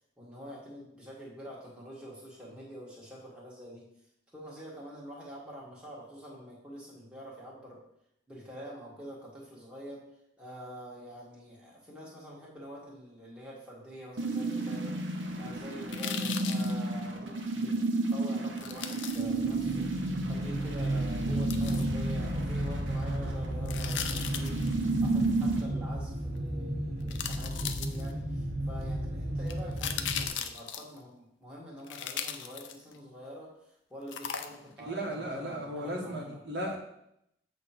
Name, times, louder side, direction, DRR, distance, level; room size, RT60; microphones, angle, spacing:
voice 1, 0.2-3.9 4.3-7.8 8.3-10.0 10.4-17.8 18.1-19.9 20.2-24.7 25.0-36.4, equal, 5° right, -6 dB, 1.7 m, -46 dB
sound 1, 14.2-25.6, right 2 dB, 85° right, 1.1 m, -32 dB
sound 2, 15.9-16.7 18.6-19.2 21.5-21.9 23.7-24.7 26.4-26.5 27.1-28.3 29.5-31.0 31.9-33.0 34.1-34.8 35.1-35.2, left 8 dB, 80° left, 0.5 m, -37 dB
sound 3, 19.2-30.3, right 1 dB, 40° right, 0.8 m, -34 dB
voice 2, 34.9-36.8, right 1 dB, 60° right, -2 dB, 1.2 m, -35 dB
8.1 x 3.1 x 5.7 m, 0.78 s
head